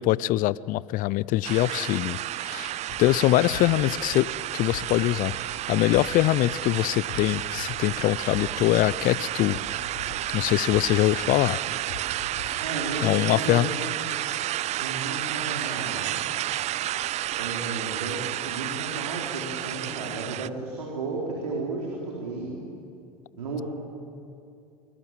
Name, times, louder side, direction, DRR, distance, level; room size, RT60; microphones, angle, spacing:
voice 1, 0.0-2.7 3.0-9.6 10.3-11.6 12.5-12.6 13.0-13.7, left 16 dB, 45° left, 21 dB, 0.6 m, -23 dB
sound 1, 1.4-20.5, right 14 dB, 35° right, 0.5 m, -31 dB
sound 2, 2.9-3.2 3.5-4.4 4.7-5.6 5.9-6.8 7.1-8.0 8.3-9.2 9.5-10.4 10.7-11.6 11.9-12.5, left 6 dB, 65° left, 3.9 m, -41 dB
voice 2, 12.6-13.7 14.8-16.2 17.4-22.5 23.4-23.6, right 3 dB, 85° right, -3 dB, 4.3 m, -33 dB
24.5 x 21.5 x 7.5 m, 2.5 s
hypercardioid pair, 85°, 19 cm